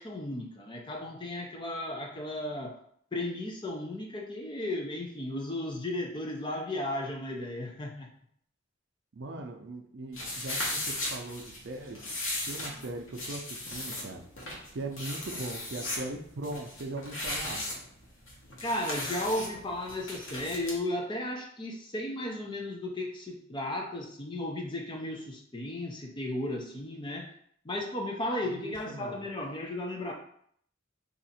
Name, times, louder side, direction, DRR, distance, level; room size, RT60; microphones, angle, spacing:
voice 1, 0.0-2.8 3.1-8.1 18.6-27.3 27.6-30.1, left 1 dB, 25° left, 1 dB, 0.5 m, -35 dB
voice 2, 9.1-12.0 12.5-14.2 14.7-17.7 28.5-29.3, right 2 dB, 60° right, 4 dB, 0.5 m, -40 dB
sound 1, 10.1-20.8, left 1 dB, 70° left, 1.0 m, -37 dB
2.8 x 2.5 x 4.2 m, 0.64 s
head